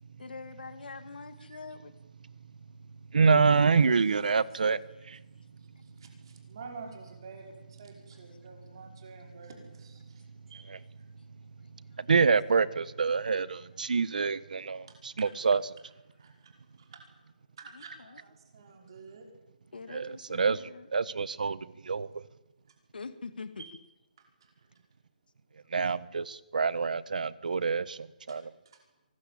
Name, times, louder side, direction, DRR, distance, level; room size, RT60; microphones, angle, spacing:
voice 1, 0.2-1.9 8.1-8.2 17.7-18.2 19.7-20.9 22.9-23.6 28.4-28.5, left 4 dB, 80° left, 2.2 m, -44 dB
voice 2, 3.1-5.2 10.7-10.8 12.0-15.6 19.9-20.6 20.9-22.2 25.7-28.5, right 5 dB, 60° right, 1.3 m, -27 dB
voice 3, 5.8-10.2 10.5-10.7 14.9-15.3 16.2-17.0 17.6-19.3 23.6-23.7 24.4-24.7 28.3-28.4 28.7-28.8, right 4 dB, 30° right, 5.3 m, -49 dB
23.5 x 20.0 x 8.8 m
hypercardioid pair, 180°, 5 cm